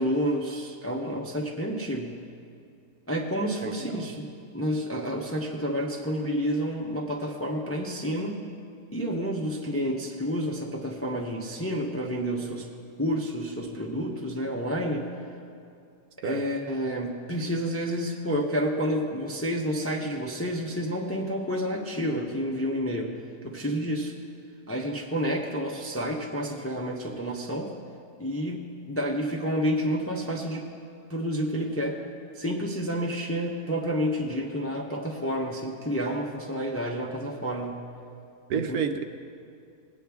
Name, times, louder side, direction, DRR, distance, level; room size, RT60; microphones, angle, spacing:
voice 1, 0.0-2.2 3.1-4.3 4.5-8.4 8.9-12.7 13.0-15.1 16.2-23.1 23.4-24.1 24.7-27.7 28.2-30.7 31.1-32.0 32.4-37.8 38.5-38.8, equal, 15° left, 0 dB, 0.5 m, -29 dB
voice 2, 3.6-4.1 16.2-16.4 38.5-39.0, right 7 dB, 75° right, 7 dB, 1.1 m, -30 dB
19.5 x 9.0 x 3.5 m, 2.4 s
omnidirectional pair, 1.7 m